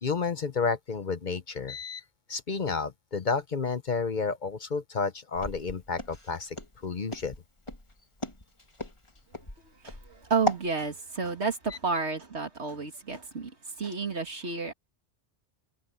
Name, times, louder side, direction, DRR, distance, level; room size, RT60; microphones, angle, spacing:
voice 1, 0.0-2.0 2.3-6.6 6.8-7.3, left 5 dB, 45° left, 0.9 m, -31 dB
Walk footsteps, 5.4-10.7, left 1 dB, 25° left, 2.8 m, -36 dB
voice 2, 9.8-14.7, right 4 dB, 70° right, 2.8 m, -31 dB
omnidirectional pair, 1.2 m